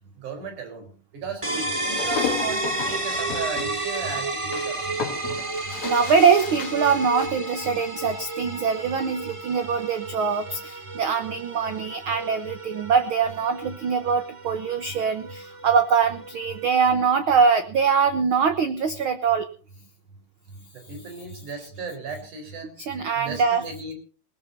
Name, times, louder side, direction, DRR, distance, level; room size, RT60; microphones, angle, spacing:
voice 1, 0.2-0.9 1.1-1.5 1.9-5.0 20.7-22.8 23.1-23.9, right 5 dB, 90° right, 7 dB, 5.9 m, -35 dB
sound 1, 1.4-17.0, right 2 dB, 30° right, 0.6 m, -32 dB
sound 2, 1.8-7.3, left 7 dB, 65° left, 3.2 m, -33 dB
voice 2, 5.8-19.5 22.8-23.6, right 6 dB, 60° right, 9 dB, 1.4 m, -23 dB
20.0 x 20.0 x 2.7 m, 0.37 s
omnidirectional pair, 3.4 m